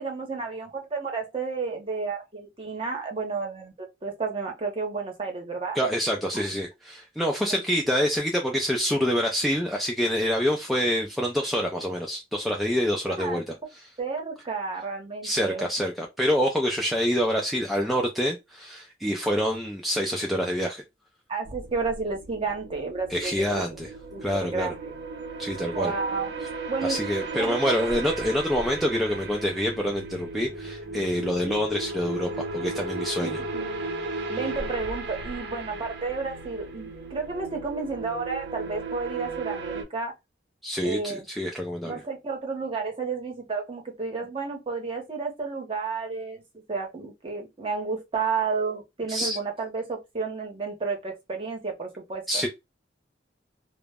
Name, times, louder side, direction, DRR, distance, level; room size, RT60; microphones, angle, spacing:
voice 1, 0.0-3.7 4.0-5.8 6.3-6.5 13.1-13.4 14.0-15.7 21.3-23.6 24.1-24.9 25.7-26.3 26.7-27.0 27.3-27.7 33.2-33.7 34.3-40.1 40.8-41.3 41.8-52.4, right 4 dB, 30° right, 0.7 m, -31 dB
voice 2, 5.7-13.4 15.2-20.8 23.1-23.9 24.2-24.7 25.4-25.9 26.8-33.4 40.6-42.0 49.1-49.4 52.3-52.5, equal, ahead, 0.3 m, -26 dB
sound 1, 21.5-39.8, right 3 dB, 65° right, 0.6 m, -35 dB
2.0 x 2.0 x 3.3 m
head